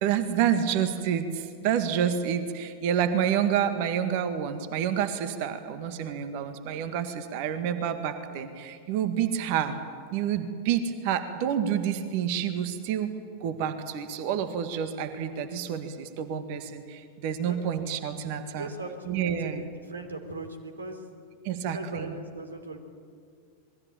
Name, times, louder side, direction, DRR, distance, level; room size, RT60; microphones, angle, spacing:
voice 1, 0.0-9.8 10.1-13.1 13.4-18.7 19.1-19.6 21.4-22.1, right 9 dB, 45° right, 9 dB, 1.9 m, -28 dB
voice 2, 17.3-17.8 18.4-21.1 21.5-22.8, right 2 dB, 75° right, 8 dB, 3.3 m, -40 dB
27.5 x 21.5 x 8.8 m, 2.2 s
figure-of-eight pair, 90°, 0 cm